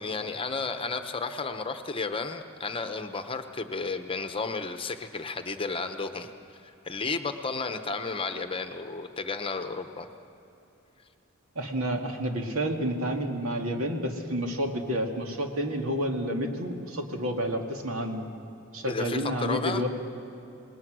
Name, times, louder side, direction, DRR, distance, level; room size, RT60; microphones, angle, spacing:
voice 1, 0.0-6.3 6.8-10.1 18.9-19.8, left 4 dB, 25° left, 8 dB, 0.9 m, -32 dB
voice 2, 11.6-18.3 18.7-19.9, equal, 80° right, 3 dB, 2.2 m, -30 dB
27.0 x 20.0 x 6.3 m, 2.9 s
head